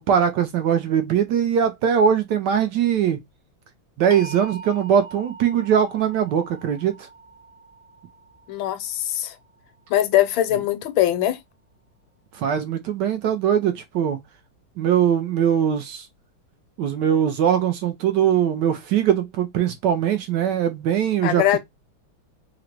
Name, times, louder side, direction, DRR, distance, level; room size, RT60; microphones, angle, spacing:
voice 1, 0.0-3.2 4.0-6.9 12.4-14.2 14.8-16.1 16.8-21.6, right 8 dB, 70° right, 1.0 m, -21 dB
sound 1, 4.1-10.1, right 3 dB, 65° left, 0.6 m, -42 dB
voice 2, 8.5-9.3 9.9-11.4 21.2-21.6, left 13 dB, 85° left, 1.4 m, -21 dB
3.8 x 2.1 x 4.4 m
omnidirectional pair, 2.2 m